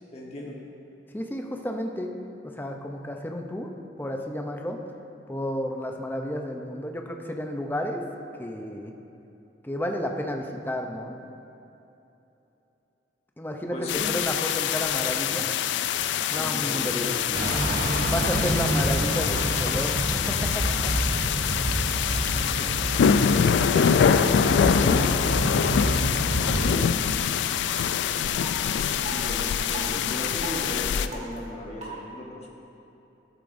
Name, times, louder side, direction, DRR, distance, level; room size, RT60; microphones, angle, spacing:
voice 1, 0.1-0.5 13.7-14.1 16.0-18.1 22.1-22.7 26.5-27.3 28.8-32.5, left 1 dB, 35° left, -3 dB, 1.1 m, -37 dB
voice 2, 1.1-2.1 2.5-3.7 4.0-4.8 5.3-8.0 8.4-8.9 9.6-11.1 13.4-15.5 16.3-17.2 18.1-21.2 24.9-25.2 26.5-26.9, left 1 dB, 10° left, 3 dB, 0.6 m, -32 dB
sound 1, 13.9-31.1, left 7 dB, 80° left, 0.3 m, -25 dB
sound 2, 17.3-26.7, right 1 dB, 60° right, 1.0 m, -28 dB
sound 3, 25.0-25.1 25.6-25.7 26.3-26.5 27.0-27.1 27.7-27.9 28.4-28.5 29.1-29.2 29.7-29.9 30.4-30.6 31.1-31.4 31.8-31.9, right 2 dB, 40° right, 1.8 m, -38 dB
12.5 x 8.0 x 2.6 m, 2.9 s
head